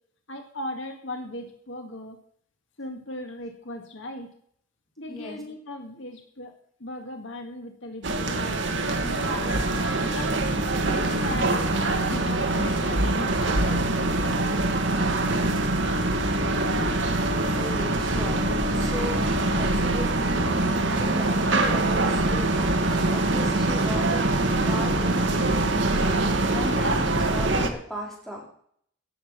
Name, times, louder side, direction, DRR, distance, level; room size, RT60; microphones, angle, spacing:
voice 1, 0.3-2.2 2.8-4.3 5.0-9.6 10.0-14.0, left 1 dB, 65° left, 4 dB, 1.9 m, -38 dB
sound 1, 8.0-27.7, right 2 dB, 60° right, 1.6 m, -24 dB
voice 2, 17.6-19.1 19.6-20.5 20.9-24.3 24.6-25.8 26.4-28.4, equal, ahead, -3 dB, 4.3 m, -37 dB
16.5 x 7.5 x 6.7 m, 0.64 s
head